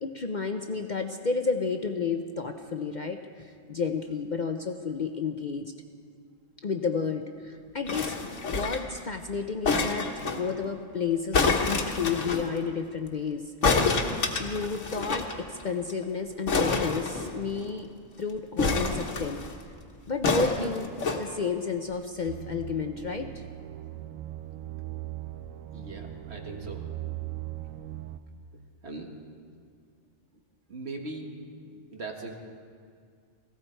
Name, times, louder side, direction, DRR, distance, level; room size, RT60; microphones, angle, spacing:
voice 1, 0.0-5.7 6.6-13.4 14.4-17.9 18.2-19.4 20.1-23.4, left 5 dB, 45° left, 5 dB, 0.7 m, -31 dB
sound 1, 7.9-8.9 9.6-10.4 11.3-12.4 13.6-15.3 15.6-15.7 15.9-16.0 16.5-17.6 18.6-19.5 20.2-21.2 21.9-22.0, left 4 dB, 70° left, 1.6 m, -27 dB
sound 2, 22.3-28.2, right 14 dB, 85° right, 1.0 m, -39 dB
voice 2, 25.7-26.8 28.8-29.1 30.7-31.3 31.6-32.3, right 2 dB, 55° right, 2 dB, 1.7 m, -39 dB
18.5 x 16.5 x 4.5 m, 2.1 s
omnidirectional pair, 1.3 m